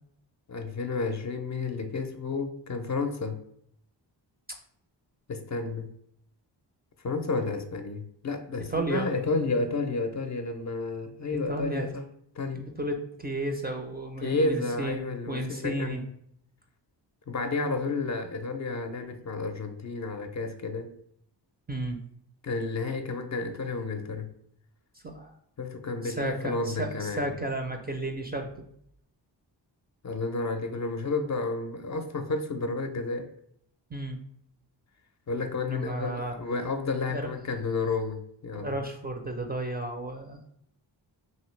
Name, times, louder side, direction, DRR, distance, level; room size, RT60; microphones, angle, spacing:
voice 1, 0.5-3.4 5.3-5.9 7.0-12.1 12.4-12.7 14.2-16.1 17.3-20.9 22.4-24.3 25.6-27.3 30.0-33.3 35.3-38.7, left 3 dB, 40° left, 0.4 m, -31 dB
voice 2, 8.7-9.1 11.5-11.9 12.5-16.0 21.7-22.0 24.9-25.3 26.0-28.7 33.9-34.2 35.7-36.3 37.1-37.3 38.5-40.4, right 2 dB, 25° right, 0.4 m, -33 dB
2.8 x 2.8 x 3.1 m
cardioid pair, 75°, 44 cm